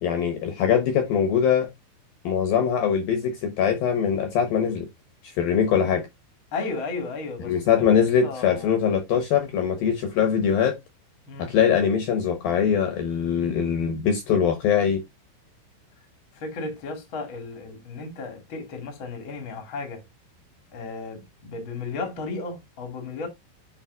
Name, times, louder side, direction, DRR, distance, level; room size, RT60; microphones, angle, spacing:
voice 1, 0.0-1.7 2.2-4.9 5.4-6.1 7.4-10.8 11.4-15.0, left 7 dB, 75° left, 2.2 m, -22 dB
voice 2, 6.5-7.8 8.2-8.7 11.2-11.5 16.3-20.0 20.7-23.3, left 3 dB, 55° left, 1.3 m, -34 dB
8.9 x 5.1 x 2.5 m
omnidirectional pair, 5.8 m